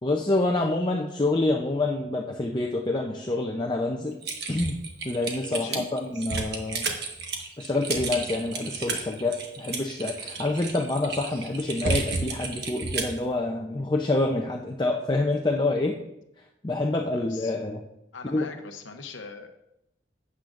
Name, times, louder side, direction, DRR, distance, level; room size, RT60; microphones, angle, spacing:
voice 1, 0.0-4.2 4.5-4.8 5.0-6.9 7.6-16.0 16.6-17.8 18.2-18.5, left 2 dB, 25° left, 1 dB, 0.6 m, -27 dB
Typing, 4.2-13.2, right 4 dB, 55° right, 1.4 m, -32 dB
voice 2, 5.5-5.9 16.9-17.6 18.1-19.5, left 4 dB, 85° left, 5 dB, 0.8 m, -41 dB
12.0 x 8.6 x 2.5 m, 0.84 s
head